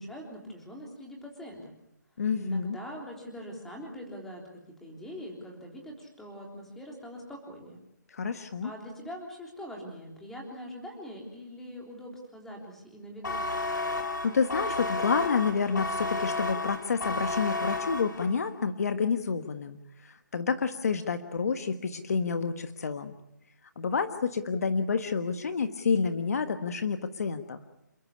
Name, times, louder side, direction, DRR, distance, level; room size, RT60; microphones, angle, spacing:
voice 1, 0.0-1.7 2.4-7.8 8.6-13.6, equal, 5° left, 0 dB, 3.6 m, -43 dB
voice 2, 2.2-2.8 8.1-8.7 14.2-23.1 23.8-27.6, left 5 dB, 55° left, 9 dB, 1.5 m, -29 dB
sound 1, 13.2-18.5, left 2 dB, 80° left, 3.7 m, -32 dB
28.5 x 14.0 x 9.8 m, 0.84 s
hypercardioid pair, 165°, 10 cm